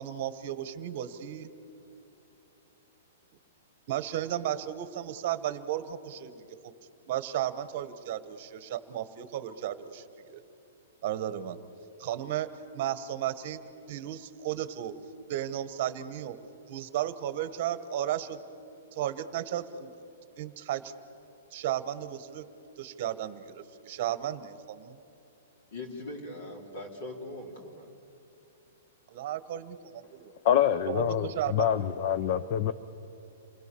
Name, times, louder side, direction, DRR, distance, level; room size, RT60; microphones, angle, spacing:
voice 1, 0.0-1.5 3.9-6.4 7.1-10.4 11.0-11.6 12.0-12.5 12.7-13.6 13.9-14.9 15.3-16.4 16.7-18.4 18.9-19.9 20.4-20.9 21.5-22.4 22.8-25.0 29.1-30.3 30.9-31.7, right 11 dB, 40° right, 13 dB, 1.2 m, -34 dB
voice 2, 25.7-27.9, left 1 dB, 55° left, 2 dB, 4.1 m, -41 dB
voice 3, 30.4-32.7, left 9 dB, 35° left, 13 dB, 0.6 m, -26 dB
28.0 x 21.0 x 7.0 m, 2.9 s
hypercardioid pair, 170°, 0 cm